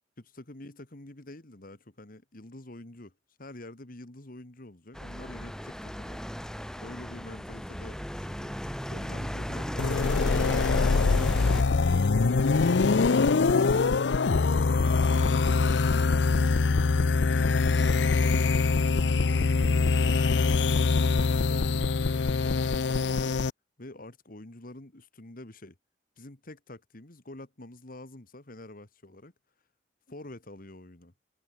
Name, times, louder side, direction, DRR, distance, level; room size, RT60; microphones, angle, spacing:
voice 1, 0.2-3.1 3.4-6.2 6.7-11.0 11.2-11.9 14.3-14.8 15.2-17.2 17.4-20.6 21.2-23.4 23.8-25.8 26.2-29.3 30.1-31.1, left 1 dB, 55° left, 2.1 m, -47 dB
sound 1, 4.9-11.6, equal, 5° left, 1.3 m, -35 dB
sound 2, 9.8-23.5, left 4 dB, 80° left, 0.6 m, -23 dB
head